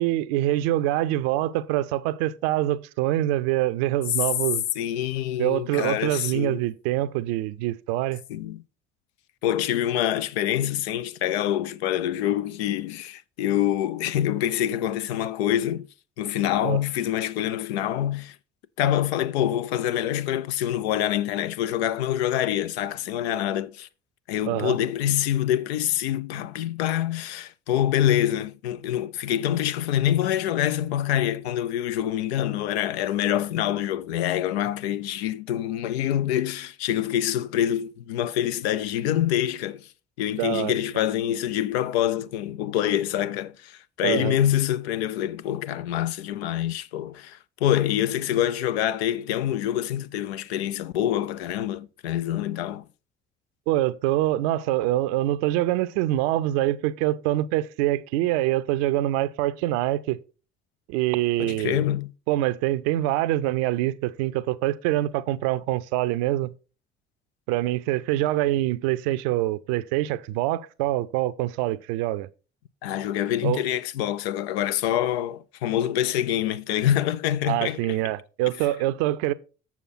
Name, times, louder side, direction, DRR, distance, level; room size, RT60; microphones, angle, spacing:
voice 1, 0.0-4.6 5.4-8.2 16.6-16.8 24.4-24.8 40.4-40.8 44.0-44.4 53.7-60.2 60.9-61.8 62.3-66.5 67.5-72.3 73.4-73.6 77.5-79.3, right 15 dB, 60° right, 0.6 m, -25 dB
voice 2, 4.8-6.6 8.3-8.6 9.4-15.9 16.2-18.4 18.8-23.9 24.3-39.9 40.2-52.8 61.4-62.1 72.8-78.0, left 11 dB, 65° left, 0.5 m, -26 dB
7.1 x 7.0 x 4.2 m
figure-of-eight pair, 50°, 34 cm